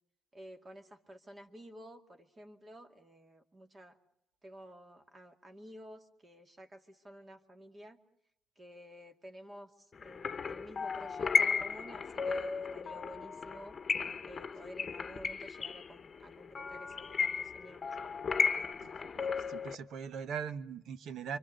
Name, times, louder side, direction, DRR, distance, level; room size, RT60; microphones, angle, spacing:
voice 1, 0.3-4.0 4.4-8.0 8.6-13.8 14.2-17.9, equal, 30° right, 5 dB, 2.3 m, -52 dB
sound 1, 10.0-19.7, left 5 dB, 40° left, 1.1 m, -34 dB
voice 2, 18.8-21.4, right 7 dB, 75° right, 13 dB, 1.2 m, -41 dB
26.5 x 24.5 x 6.8 m, 0.69 s
cardioid pair, 90°, 0 cm